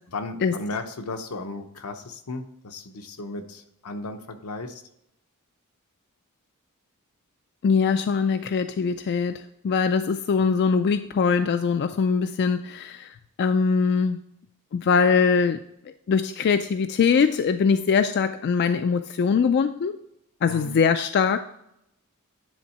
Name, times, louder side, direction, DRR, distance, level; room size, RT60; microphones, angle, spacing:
voice 1, 0.1-4.8 20.5-20.8, left 3 dB, 85° left, 6 dB, 0.8 m, -35 dB
voice 2, 7.6-14.2 14.7-15.6 16.1-19.9 20.4-21.4, left 5 dB, 50° left, 9 dB, 0.3 m, -22 dB
10.0 x 3.6 x 4.2 m, 0.77 s
head